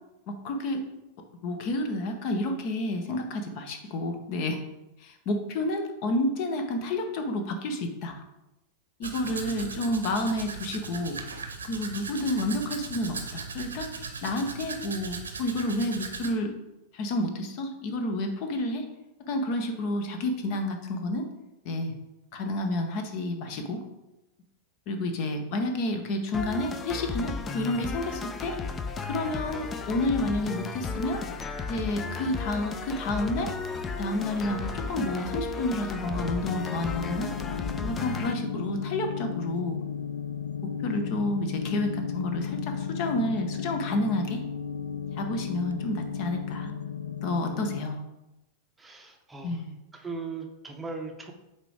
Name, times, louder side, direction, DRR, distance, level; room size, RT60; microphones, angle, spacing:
voice 1, 0.3-0.8 1.4-4.6 5.0-8.1 9.0-11.2 11.6-16.6 16.9-18.9 19.3-21.3 21.6-21.9 22.3-23.8 24.9-28.6 29.0-31.2 31.7-33.5 34.0-37.3 37.8-39.8 40.8-44.4 45.1-46.7 47.2-48.0 49.4-49.8, left 1 dB, 45° left, 6 dB, 0.9 m, -30 dB
Domestic sounds home sounds, 9.0-16.3, right 5 dB, 75° right, 0.8 m, -38 dB
sound 1, 26.3-38.3, left 4 dB, 20° left, 0.5 m, -34 dB
sound 2, 36.1-47.8, left 7 dB, 75° left, 0.3 m, -34 dB
voice 2, 48.8-49.6 49.9-51.3, right 4 dB, 10° right, 2 dB, 0.7 m, -39 dB
8.0 x 3.0 x 4.8 m, 0.96 s
figure-of-eight pair, 90°, 0 cm